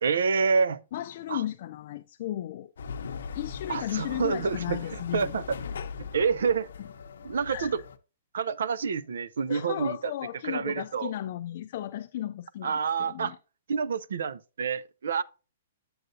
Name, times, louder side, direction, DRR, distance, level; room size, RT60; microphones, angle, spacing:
voice 1, 0.0-0.8 1.3-1.4 3.7-5.4 6.1-6.7 7.2-7.8 8.3-10.1 10.4-11.1 12.6-13.3 13.7-15.2, right 5 dB, 80° right, 0.4 m, -28 dB
voice 2, 0.9-2.7 3.3-5.4 6.4-6.5 7.5-7.7 9.5-13.4, left 13 dB, 40° left, 0.3 m, -35 dB
sound 1, 2.8-8.0, left 5 dB, 75° left, 0.7 m, -39 dB
7.8 x 7.7 x 2.6 m
hypercardioid pair, 175°, 0 cm